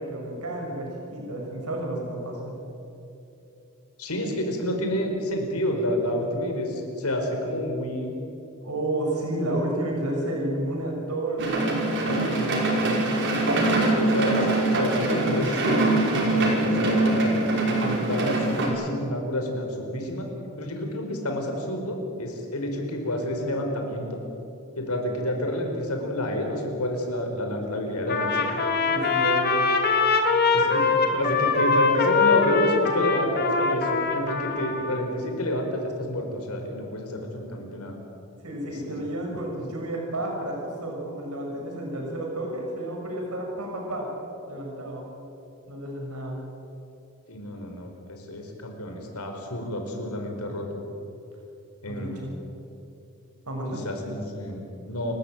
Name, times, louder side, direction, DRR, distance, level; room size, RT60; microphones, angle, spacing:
voice 1, 0.0-2.6 8.6-12.6 28.9-29.7 38.4-44.1 44.5-45.0 45.7-46.4 51.9-52.4 53.5-53.8, right 1 dB, 90° right, 0 dB, 6.2 m, -31 dB
voice 2, 4.0-8.1 13.8-17.3 17.7-20.3 20.6-24.1 24.8-28.5 30.5-30.9 31.1-38.0 38.7-38.8 47.3-50.8 51.8-52.2 53.8-55.1, left 1 dB, 85° left, 2 dB, 4.8 m, -29 dB
sound 1, 11.4-18.7, right 2 dB, 55° right, 5.6 m, -23 dB
Trumpet, 28.1-35.0, left 4 dB, 45° left, 2.5 m, -23 dB
29.5 x 14.0 x 9.2 m, 2.8 s
head